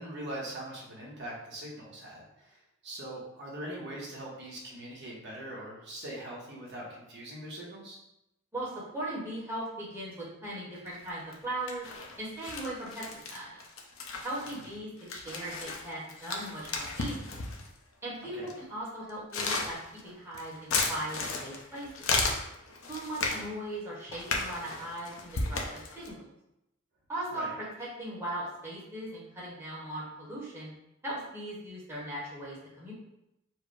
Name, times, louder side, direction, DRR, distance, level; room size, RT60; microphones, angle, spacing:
voice 1, 0.0-8.0 14.4-14.7 18.3-18.5 27.3-27.5, right 1 dB, 55° right, -5 dB, 1.2 m, -42 dB
voice 2, 8.5-11.9 12.2-13.6 14.2-17.4 18.0-19.8 20.0-22.1 22.9-26.3 27.1-30.7 31.0-32.9, right 1 dB, 10° right, -7 dB, 1.2 m, -39 dB
sound 1, 10.8-11.4 11.7-17.8 18.5-18.6 19.1-23.5 24.1-26.1, left 3 dB, 75° left, 0.7 m, -34 dB
4.7 x 2.1 x 4.7 m, 0.87 s
head